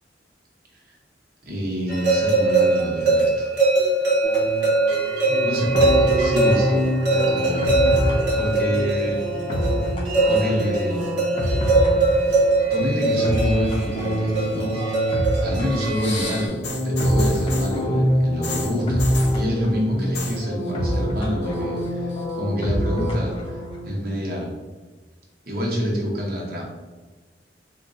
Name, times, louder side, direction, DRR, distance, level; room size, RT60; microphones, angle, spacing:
voice 1, 1.4-3.5 5.4-9.2 10.2-11.0 12.7-14.8 15.4-19.0 19.3-24.5 25.5-26.6, equal, 60° right, -2 dB, 0.8 m, -27 dB
sound 1, 1.9-16.5, right 2 dB, 85° right, 0.9 m, -21 dB
sound 2, 4.2-23.9, equal, 30° left, 0.5 m, -25 dB
sound 3, 15.8-17.8 18.4-19.4 20.0-20.4 20.7-21.2 21.5-22.3 23.1-23.2, left 4 dB, 75° left, 0.6 m, -34 dB
3.8 x 2.2 x 2.6 m, 1.3 s
head